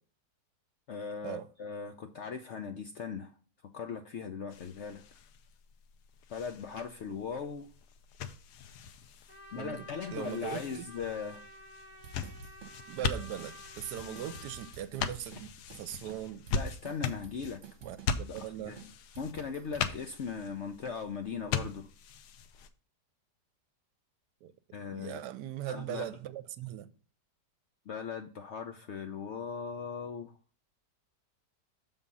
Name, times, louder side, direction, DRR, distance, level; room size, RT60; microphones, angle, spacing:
voice 1, 0.9-3.3 3.7-5.0 6.3-7.7 9.5-11.4 16.5-17.6 18.3-18.9 19.2-21.9 24.7-25.2 25.7-26.1 27.9-30.3, left 6 dB, 65° left, 0.7 m, -39 dB
sound 1, 4.5-22.7, left 6 dB, 80° left, 1.2 m, -40 dB
Trumpet, 9.3-14.7, equal, 5° left, 1.1 m, -52 dB
voice 2, 10.1-10.8 12.9-16.4 17.8-18.8 24.4-24.5 24.9-26.9, right 11 dB, 80° right, 1.2 m, -40 dB
sound 2, 12.0-13.1 13.4-13.5 13.8-15.4 15.7-15.8 16.1-18.1 18.4-18.5 18.8-19.9, right 7 dB, 50° right, 1.4 m, -50 dB
7.0 x 3.8 x 5.3 m
omnidirectional pair, 1.8 m